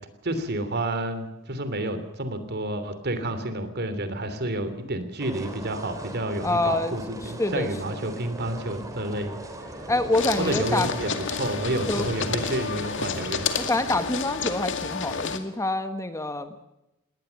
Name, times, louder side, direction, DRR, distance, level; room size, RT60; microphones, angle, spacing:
voice 1, 0.2-9.3 10.4-13.5, right 1 dB, 50° right, 10 dB, 3.1 m, -30 dB
sound 1, 5.2-14.0, right 1 dB, 15° right, 3.5 m, -39 dB
voice 2, 6.4-6.9 7.2-8.1 9.9-10.9 11.8-12.1 13.6-16.5, left 2 dB, 15° left, 9 dB, 1.3 m, -26 dB
sound 2, 10.1-15.4, left 6 dB, 60° left, 2.2 m, -30 dB
21.0 x 18.5 x 7.1 m, 0.91 s
head